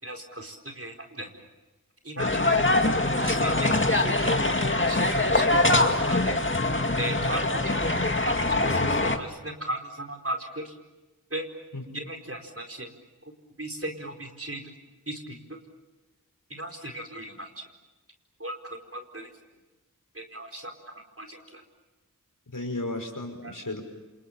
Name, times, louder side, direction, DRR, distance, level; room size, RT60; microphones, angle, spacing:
voice 1, 0.0-1.4 2.0-2.9 3.2-4.3 4.9-6.3 7.0-7.9 8.3-10.7 11.3-11.5 11.9-12.9 13.2-13.3 13.6-14.6 15.1-15.4 16.5-17.6 18.4-19.3 20.1-21.6 23.4-23.5, right 1 dB, 40° right, 2 dB, 4.6 m, -37 dB
voice 2, 2.2-2.5 11.7-11.8 22.5-23.8, left 2 dB, 65° left, 4 dB, 5.5 m, -34 dB
sound 1, 2.2-9.2, left 2 dB, 35° left, 2.2 m, -23 dB
29.5 x 27.0 x 7.4 m, 1.1 s
wide cardioid pair, 45°, 34 cm